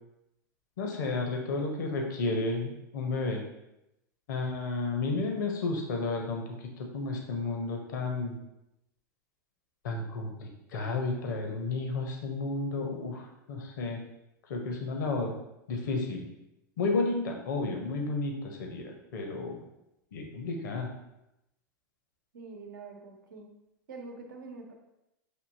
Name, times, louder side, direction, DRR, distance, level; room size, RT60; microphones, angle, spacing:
voice 1, 0.8-3.4 4.3-8.4 9.8-14.0 14.5-15.3 15.7-16.3 16.8-19.6 20.1-20.9, left 3 dB, 75° left, 2 dB, 0.8 m, -32 dB
voice 2, 22.3-23.5 23.9-24.7, right 3 dB, 80° right, 2 dB, 0.9 m, -45 dB
6.2 x 2.7 x 2.7 m, 0.88 s
hypercardioid pair, 100°, 10 cm